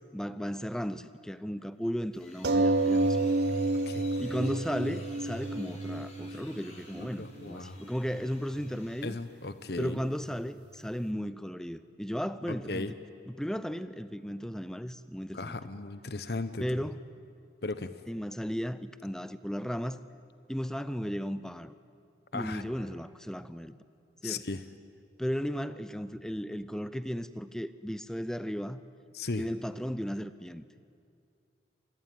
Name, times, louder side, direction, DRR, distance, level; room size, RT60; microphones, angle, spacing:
voice 1, 0.1-3.2 4.2-9.2 9.8-12.9 13.3-15.6 16.6-17.0 18.1-20.0 20.5-21.7 22.3-23.8 24.2-24.4 25.2-28.8 29.4-30.6, equal, 5° left, 14 dB, 0.6 m, -35 dB
sound 1, 1.8-9.3, left 2 dB, 40° left, 5.3 m, -54 dB
sound 2, 2.4-7.4 8.2-8.3 8.6-8.7, right 2 dB, 70° right, 0.8 m, -29 dB
voice 2, 3.9-4.4 6.3-6.4 7.2-7.8 9.0-10.0 12.5-12.9 15.3-16.9 17.6-17.9 22.3-22.6 24.2-24.6 29.1-29.4, left 3 dB, 60° left, 12 dB, 1.0 m, -36 dB
26.5 x 20.5 x 9.4 m, 2.4 s
head